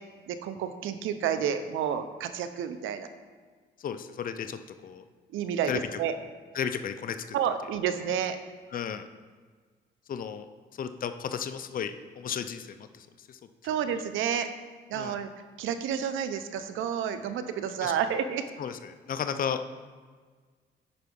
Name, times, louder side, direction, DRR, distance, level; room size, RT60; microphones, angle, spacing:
voice 1, 0.3-3.1 5.3-6.1 7.3-8.4 13.6-14.5 14.9-15.3 15.6-18.4, right 8 dB, 80° right, 10 dB, 0.7 m, -30 dB
voice 2, 3.8-5.0 5.7-5.8 6.5-7.2 8.7-9.1 10.1-10.5 10.7-13.4 14.9-15.2 17.8-17.9 18.6-19.6, left 7 dB, 45° left, 9 dB, 0.6 m, -34 dB
10.0 x 4.7 x 5.4 m, 1.5 s
cardioid pair, 90°, 20 cm